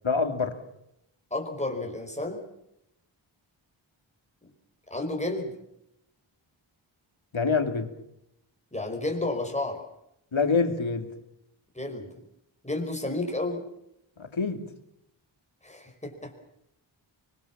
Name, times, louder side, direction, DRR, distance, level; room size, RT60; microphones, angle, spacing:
voice 1, 0.0-0.6 7.3-7.9 10.3-11.1 14.2-14.6, left 4 dB, 70° left, 7 dB, 2.7 m, -26 dB
voice 2, 1.3-2.4 4.9-5.5 8.7-9.8 11.8-12.1 12.6-13.6 15.6-16.3, left 2 dB, 15° left, 2 dB, 5.2 m, -31 dB
24.5 x 22.5 x 7.3 m, 0.80 s
wide cardioid pair, 65°, 48 cm